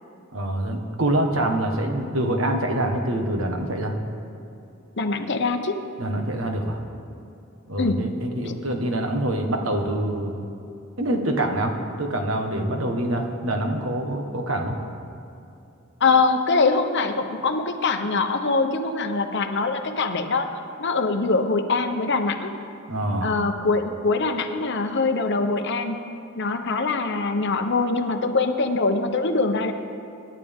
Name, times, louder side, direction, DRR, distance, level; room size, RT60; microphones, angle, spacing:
voice 1, 0.3-3.9 6.0-6.8 7.7-10.3 11.0-14.8 22.9-23.3, right 1 dB, 70° right, 3 dB, 1.6 m, -25 dB
voice 2, 5.0-5.8 7.8-8.0 8.4-8.5 16.0-20.5 20.8-22.5 23.2-26.0 26.4-29.7, left 3 dB, 60° left, 6 dB, 1.0 m, -23 dB
25.0 x 11.5 x 3.7 m, 2.7 s
head